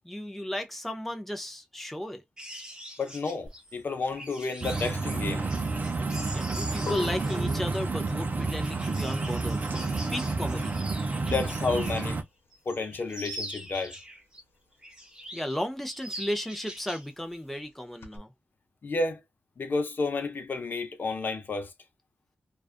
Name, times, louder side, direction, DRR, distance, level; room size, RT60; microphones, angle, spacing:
voice 1, 0.0-2.2 6.3-9.6 10.1-10.8 15.3-18.3, equal, 5° left, 0.6 m, -34 dB
sound 1, 2.4-12.2 12.5-14.4 14.8-15.6 15.9-17.1 17.4-17.6, right 1 dB, 20° right, 0.9 m, -43 dB
voice 2, 3.0-5.5 11.2-12.2 12.7-13.9 18.8-19.2 19.6-21.7, left 3 dB, 60° left, 0.7 m, -31 dB
sound 2, 3.5-13.7 14.0-18.2, left 6 dB, 85° left, 0.8 m, -46 dB
sound 3, 4.6-12.2, right 3 dB, 50° right, 0.6 m, -30 dB
2.4 x 2.3 x 2.4 m
cardioid pair, 75°, 4 cm